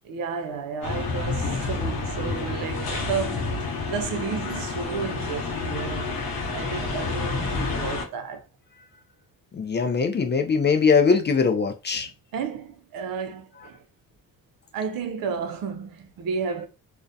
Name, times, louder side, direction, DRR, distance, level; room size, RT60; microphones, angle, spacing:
voice 1, 0.0-6.2 6.5-8.5 11.9-12.0 12.3-13.8 14.7-16.7, right 6 dB, 70° right, 0.6 m, -32 dB
sound 1, 0.8-8.0, left 3 dB, 70° left, 0.8 m, -29 dB
voice 2, 9.5-12.1, left 5 dB, 30° left, 0.4 m, -21 dB
2.3 x 2.1 x 2.6 m
cardioid pair, 90°, 35 cm